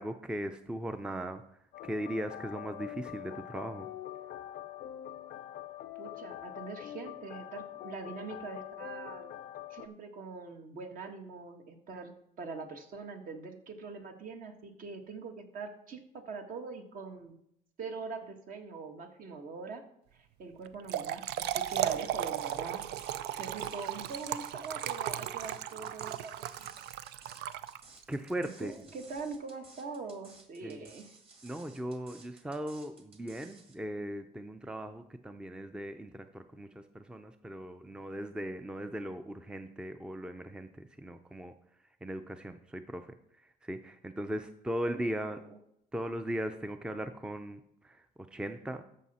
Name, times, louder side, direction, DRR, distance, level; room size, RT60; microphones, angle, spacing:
voice 1, 0.0-1.4 1.8-3.9 28.1-28.7 30.6-30.9 31.4-41.5 42.0-43.1 43.6-45.4 45.9-48.8, right 1 dB, 5° right, 9 dB, 0.5 m, -38 dB
sound 1, 1.7-9.9, left 12 dB, 60° left, 0.5 m, -44 dB
voice 2, 5.9-9.3 9.7-17.4 17.8-19.8 20.1-22.8 23.4-26.7 28.4-31.1 44.9-45.4, right 4 dB, 55° right, 5 dB, 1.6 m, -43 dB
Trickle dribble / Fill (with liquid), 20.7-28.1, right 12 dB, 75° right, 0.5 m, -36 dB
sound 2, 21.3-33.7, right 3 dB, 35° right, 2.0 m, -57 dB
13.5 x 5.7 x 4.2 m, 0.74 s
cardioid pair, 110°, 17 cm